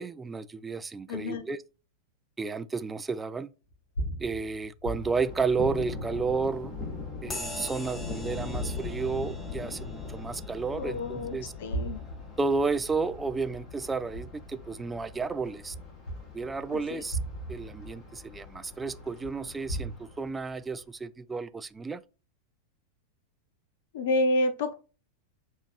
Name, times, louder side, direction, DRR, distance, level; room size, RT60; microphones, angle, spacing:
voice 1, 0.0-1.6 2.4-3.5 4.2-6.7 7.2-11.5 12.4-15.8 16.3-17.2 17.5-22.0, right 4 dB, 15° right, 0.3 m, -32 dB
voice 2, 1.1-1.5 10.6-12.0 16.7-17.0 23.9-24.7, left 1 dB, 55° left, 0.5 m, -29 dB
sound 1, 3.7-7.8 8.3-9.7 10.1-10.2 11.4-15.1 15.6-19.9, right 1 dB, 70° left, 1.6 m, -39 dB
Thunder, 4.9-20.8, left 4 dB, 30° left, 1.6 m, -41 dB
sound 2, 7.3-15.2, left 1 dB, 10° left, 0.8 m, -46 dB
6.8 x 2.7 x 2.4 m
figure-of-eight pair, 90°, 0 cm